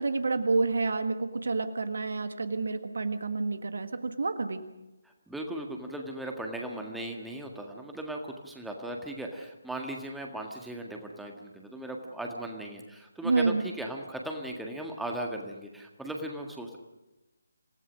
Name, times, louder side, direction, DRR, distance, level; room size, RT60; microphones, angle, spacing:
voice 1, 0.0-4.6 13.2-13.6, right 3 dB, 55° right, 9 dB, 1.6 m, -29 dB
voice 2, 5.0-16.8, right 1 dB, ahead, 1 dB, 1.8 m, -38 dB
27.5 x 17.5 x 6.4 m, 1.0 s
figure-of-eight pair, 150°, 0 cm